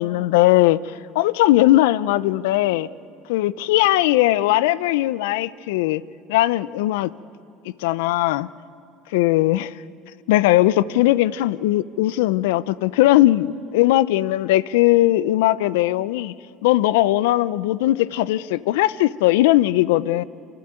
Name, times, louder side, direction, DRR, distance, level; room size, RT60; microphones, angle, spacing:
voice 1, 0.0-2.9 3.3-6.0 6.3-7.1 7.8-8.5 9.1-9.7 10.3-16.3 16.6-20.2, left 16 dB, 80° left, 18 dB, 0.6 m, -19 dB
28.0 x 24.0 x 8.9 m, 2.4 s
supercardioid pair, 85°, 0 cm